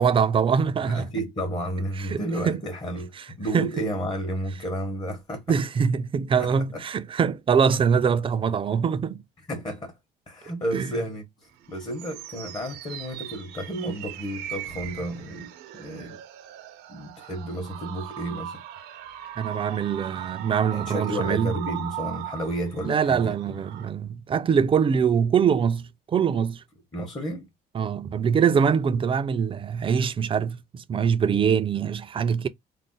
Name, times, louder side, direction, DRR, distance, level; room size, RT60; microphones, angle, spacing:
voice 1, 0.0-1.1 2.1-2.2 2.5-2.6 3.5-3.7 5.5-9.2 10.7-10.9 19.4-21.5 22.8-26.6 27.7-32.5, right 7 dB, 30° right, 0.4 m, -23 dB
voice 2, 0.8-5.4 6.4-6.8 9.5-9.9 10.3-16.2 16.9-18.6 20.7-23.5 26.9-27.5, right 1 dB, 25° left, 1.0 m, -32 dB
sound 1, 11.5-23.9, right 12 dB, 85° right, 0.6 m, -39 dB
2.5 x 2.0 x 3.7 m
cardioid pair, 110°, 17 cm